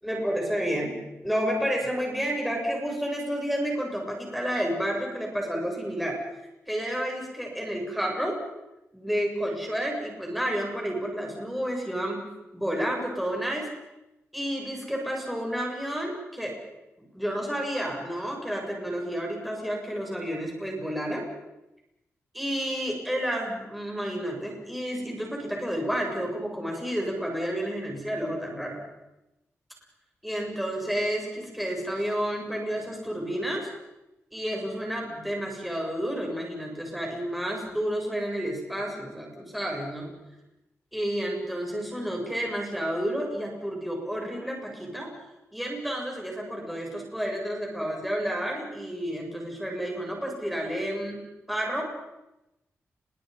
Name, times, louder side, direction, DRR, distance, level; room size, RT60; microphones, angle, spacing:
voice 1, 0.0-1.0 1.2-6.2 6.7-8.4 8.9-12.2 12.5-13.7 14.3-16.6 17.1-21.3 22.3-28.8 30.2-33.7 34.3-40.1 40.9-45.1 45.5-51.2 51.5-51.8, equal, ahead, -1 dB, 8.0 m, -30 dB
30.0 x 24.0 x 5.6 m, 0.94 s
cardioid pair, 85°, 5 cm